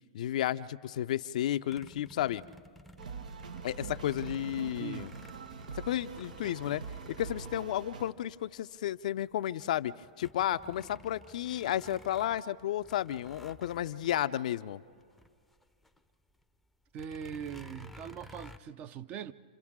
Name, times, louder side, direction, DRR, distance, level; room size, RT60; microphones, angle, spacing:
voice 1, 0.1-2.4 3.6-5.1 5.8-6.8 7.1-14.8, left 12 dB, 65° left, 0.5 m, -32 dB
sound 1, 1.7-8.3 8.9-9.0 9.3-16.0 16.3-16.4 16.9-18.6, left 1 dB, ahead, 0.6 m, -53 dB
sound 2, 3.0-8.1, right 5 dB, 80° right, 0.8 m, -44 dB
voice 2, 4.8-5.1 16.9-19.3, right 8 dB, 35° right, 0.6 m, -41 dB
28.0 x 26.5 x 3.7 m
hypercardioid pair, 115°, 4 cm